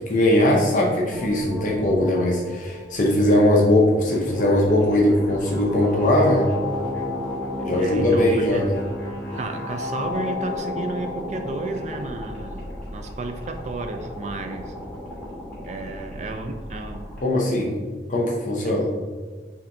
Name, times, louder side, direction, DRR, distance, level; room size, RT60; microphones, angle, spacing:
voice 1, 0.0-6.5 7.6-8.8 17.2-17.7 18.1-18.9, left 1 dB, 45° left, -1 dB, 0.5 m, -20 dB
sound 1, 1.1-17.2, left 1 dB, 5° left, 1.3 m, -33 dB
voice 2, 7.8-8.6 9.3-12.7 12.9-14.9 15.6-17.2 18.6-18.8, right 3 dB, 40° right, 6 dB, 0.3 m, -32 dB
5.5 x 2.6 x 2.6 m, 1.5 s
head